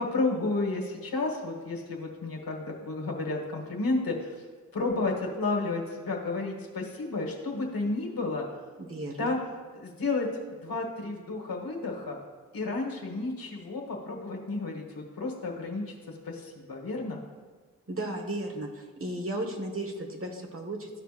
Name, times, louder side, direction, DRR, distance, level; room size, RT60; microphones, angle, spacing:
voice 1, 0.0-4.4 4.7-8.4 9.2-9.4 9.7-10.3 10.6-12.2 12.5-16.0 16.2-17.2, left 3 dB, 75° left, 1 dB, 1.5 m, -31 dB
voice 2, 8.8-9.3 17.9-20.9, right 1 dB, 40° right, 2 dB, 1.4 m, -35 dB
13.5 x 4.6 x 2.5 m, 1.4 s
cardioid pair, 40°, 35 cm